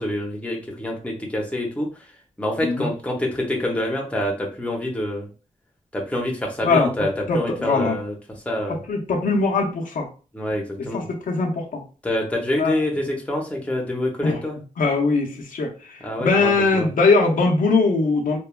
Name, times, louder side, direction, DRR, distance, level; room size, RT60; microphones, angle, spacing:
voice 1, 0.0-1.9 2.4-5.3 5.9-8.8 10.3-11.1 12.0-14.6 16.0-16.9, left 1 dB, 10° left, 0 dB, 0.7 m, -26 dB
voice 2, 7.3-8.0 8.9-10.1 10.9-11.8 12.6-12.7 14.2-14.4 14.8-18.4, left 3 dB, 80° left, 1 dB, 0.6 m, -21 dB
3.1 x 2.2 x 2.2 m, 0.35 s
wide cardioid pair, 125°, 14 cm